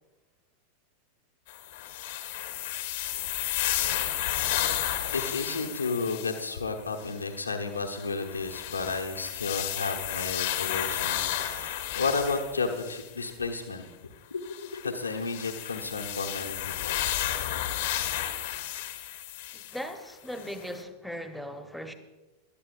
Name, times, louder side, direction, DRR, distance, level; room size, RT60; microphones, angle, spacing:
sound 1, 1.5-6.5 7.0-7.2 7.8-13.3 14.4-19.8 20.4-20.5, left 12 dB, 55° left, 1.0 m, -32 dB
voice 1, 5.1-13.8 14.3-17.0, left 4 dB, 80° left, 3 dB, 1.1 m, -32 dB
voice 2, 19.5-21.9, equal, ahead, 6 dB, 1.1 m, -38 dB
20.5 x 12.0 x 2.5 m, 1.2 s
figure-of-eight pair, 90°, 0 cm